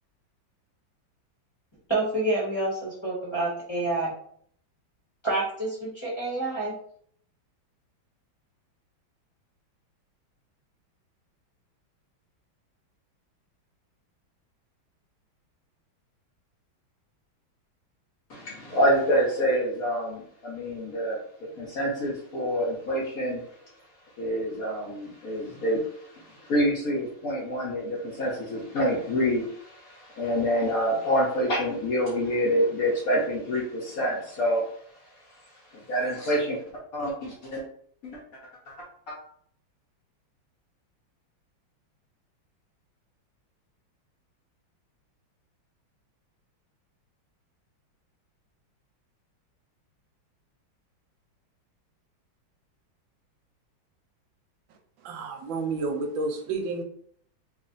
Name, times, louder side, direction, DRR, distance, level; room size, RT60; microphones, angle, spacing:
voice 1, 1.9-4.1 5.2-6.7, right 2 dB, 20° left, -7 dB, 0.8 m, -28 dB
voice 2, 18.3-23.4 24.2-34.7 34.9-35.0 35.7-36.6 36.9-37.6 38.0-38.2 38.7-38.8 39.1-39.2, equal, 60° left, -4 dB, 1.0 m, -27 dB
voice 3, 55.0-56.8, right 3 dB, 75° right, 4 dB, 1.3 m, -30 dB
3.3 x 2.4 x 3.8 m, 0.62 s
omnidirectional pair, 2.2 m